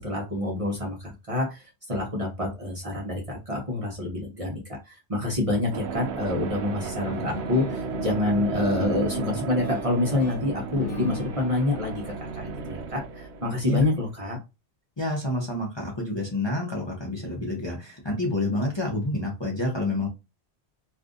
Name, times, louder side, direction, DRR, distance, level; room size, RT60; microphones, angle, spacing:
voice 1, 0.0-4.6 4.8-14.4, left 2 dB, 35° right, -1 dB, 0.8 m, -27 dB
sound 1, 5.7-14.3, right 6 dB, 85° right, 0.9 m, -34 dB
sound 2, 7.0-13.6, left 6 dB, 60° left, 0.8 m, -39 dB
voice 2, 15.0-20.1, left 2 dB, 30° left, -1 dB, 0.7 m, -28 dB
2.6 x 2.4 x 3.7 m, 0.27 s
omnidirectional pair, 1.1 m